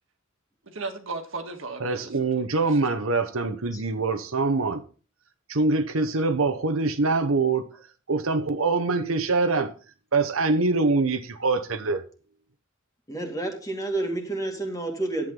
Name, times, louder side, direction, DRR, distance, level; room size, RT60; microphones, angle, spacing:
voice 1, 0.6-2.8, right 3 dB, 70° right, 1.8 m, -36 dB
voice 2, 1.8-4.8 5.5-7.7 8.1-9.7 10.1-12.0, right 3 dB, 90° right, 1.1 m, -24 dB
voice 3, 13.1-15.3, right 2 dB, 15° left, 2.2 m, -29 dB
11.0 x 8.7 x 3.8 m
head